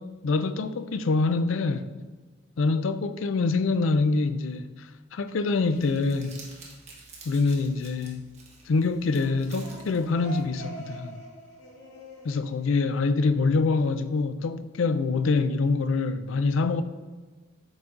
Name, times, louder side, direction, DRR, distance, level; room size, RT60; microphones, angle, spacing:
voice 1, 0.0-1.9 2.6-6.4 7.2-8.2 8.7-11.2 12.2-16.8, left 3 dB, 85° left, 0.4 m, -25 dB
Crumpling crinkling, 5.5-10.6, right 3 dB, 35° right, 1.3 m, -50 dB
sound 1, 9.1-13.6, equal, 70° left, 2.3 m, -45 dB
8.8 x 4.0 x 3.7 m
head